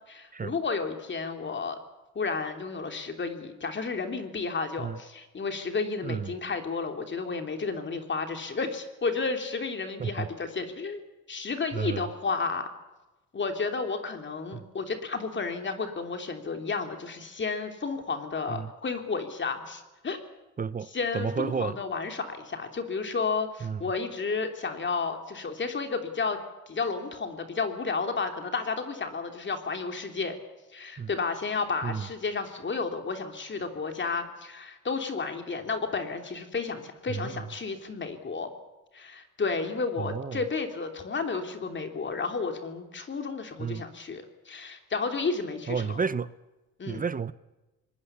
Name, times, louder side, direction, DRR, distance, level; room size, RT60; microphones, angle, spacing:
voice 1, 0.1-1.8 2.1-12.7 13.3-20.2 20.9-26.4 26.7-30.4 30.7-38.5 38.9-46.0 46.8-47.0, left 4 dB, 40° left, 3.2 m, -32 dB
voice 2, 6.0-6.3 10.0-10.3 11.7-12.0 14.5-14.7 18.5-18.7 20.6-20.9 21.1-21.8 23.6-23.8 31.0-31.1 31.8-32.1 37.1-37.4 40.0-40.4 43.6-43.8 45.7-46.3 46.9-47.3, right 6 dB, 30° right, 0.7 m, -31 dB
24.5 x 20.5 x 7.1 m
cardioid pair, 90°, 30 cm